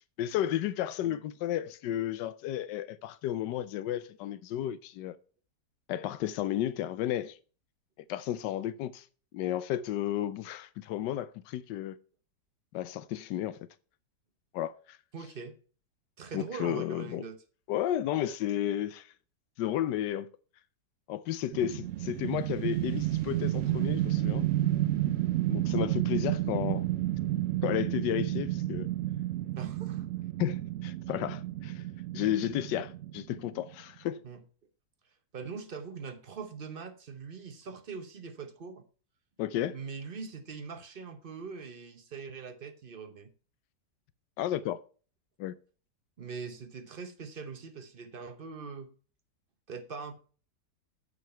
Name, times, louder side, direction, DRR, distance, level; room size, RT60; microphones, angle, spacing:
voice 1, 0.2-5.2 5.9-7.4 8.1-9.0 9.3-12.0 12.7-13.7 14.5-15.0 16.3-17.2 17.7-19.1 19.6-20.3 21.1-24.5 25.5-26.9 27.6-28.9 30.4-31.8 32.1-34.2 39.4-39.8 44.4-44.8 45.4-45.6, left 12 dB, 85° left, 1.2 m, -32 dB
voice 2, 15.1-15.6 16.2-17.4 29.6-30.1 34.2-34.4 35.3-38.9 39.7-43.3 46.2-48.9 49.7-50.1, right 5 dB, 40° right, 0.9 m, -42 dB
sound 1, 21.5-33.7, right 14 dB, 80° right, 0.6 m, -31 dB
8.6 x 6.8 x 4.4 m
omnidirectional pair, 1.8 m